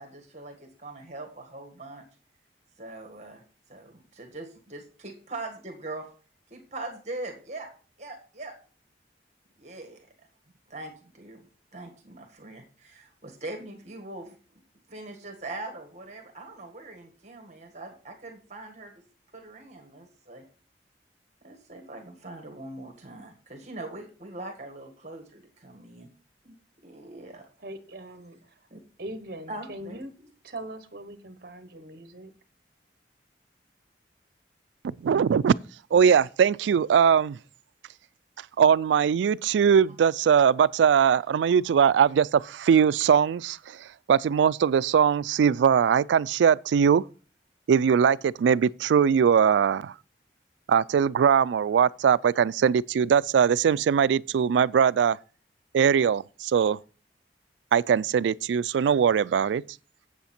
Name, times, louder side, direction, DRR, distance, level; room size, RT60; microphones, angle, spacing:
voice 1, 0.0-2.0 2.8-3.4 3.7-6.1 6.5-7.7 8.0-8.5 9.6-10.0 10.7-11.4 11.7-14.3 14.9-18.9 19.3-20.4 21.4-26.1 26.4-26.6 26.8-27.4 28.7-28.8 29.5-30.0, right 2 dB, 40° right, 1.7 m, -41 dB
voice 2, 27.6-28.7 29.0-30.1 30.4-32.3, right 1 dB, 55° right, 1.1 m, -41 dB
voice 3, 34.8-35.5 35.9-37.4 38.6-47.0 47.7-49.9 50.7-55.2 55.7-56.8 57.7-59.6, right 7 dB, 85° right, 0.3 m, -21 dB
8.3 x 7.8 x 4.3 m
head